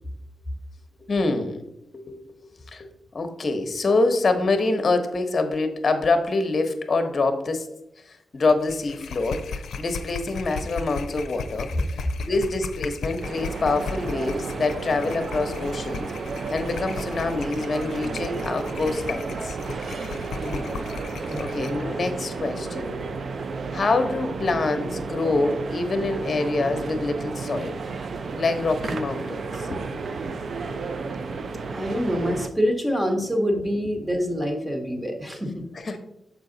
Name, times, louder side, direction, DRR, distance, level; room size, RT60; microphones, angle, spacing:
voice 1, 1.1-1.6 1.9-2.4 2.7-7.7 8.1-11.7 12.2-16.1 16.5-19.6 21.4-23.1 23.4-23.5 23.7-27.7 28.4-29.8 35.7-36.0, left 3 dB, 45° left, 7 dB, 0.9 m, -25 dB
sound 1, 8.5-21.8, left 5 dB, 90° left, 0.5 m, -36 dB
sound 2, 13.2-32.5, right 4 dB, 60° right, 0.5 m, -32 dB
voice 2, 20.4-20.8 21.3-21.7 31.7-35.6, equal, 10° right, 3 dB, 1.2 m, -26 dB
6.8 x 4.9 x 3.9 m, 0.85 s
cardioid pair, 95°, 0 cm